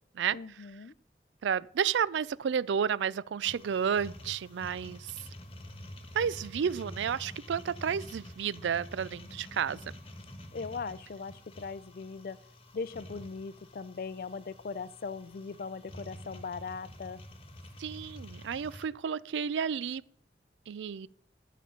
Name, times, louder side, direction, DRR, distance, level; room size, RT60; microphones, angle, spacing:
voice 1, 0.3-0.9 10.5-12.4 12.7-17.2, left 4 dB, 55° left, 0.4 m, -39 dB
voice 2, 1.4-5.1 6.1-9.8 17.8-20.0 20.7-21.1, right 7 dB, 90° right, 0.4 m, -31 dB
sound 1, 3.4-18.9, left 1 dB, 30° left, 1.2 m, -48 dB
12.0 x 5.1 x 7.2 m
head